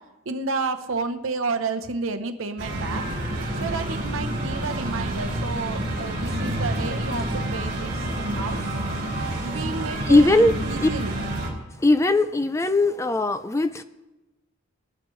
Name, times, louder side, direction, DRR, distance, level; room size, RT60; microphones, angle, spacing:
voice 1, 0.3-3.0 3.6-8.6 9.4-11.1, right 4 dB, 75° right, 9 dB, 0.8 m, -31 dB
sound 1, 2.6-11.5, right 1 dB, 50° right, 3.8 m, -28 dB
voice 2, 9.9-10.6 10.8-10.9 11.8-13.8, left 2 dB, 15° left, 11 dB, 0.4 m, -20 dB
19.0 x 12.0 x 3.2 m, 1.1 s
head